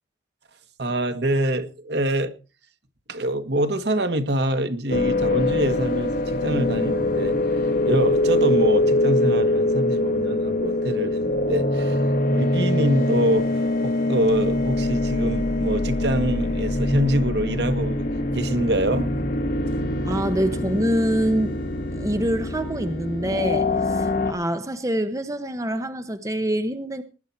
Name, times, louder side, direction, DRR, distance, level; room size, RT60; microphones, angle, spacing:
voice 1, 0.8-2.3 3.1-7.4 7.9-18.1 18.3-19.3 20.1-20.2, right 1 dB, 65° right, 1.9 m, -25 dB
sound 1, 4.9-24.3, left 2 dB, 50° left, 2.6 m, -23 dB
voice 2, 20.0-21.6 21.9-27.0, right 1 dB, 20° right, 1.1 m, -25 dB
20.0 x 10.0 x 4.5 m
head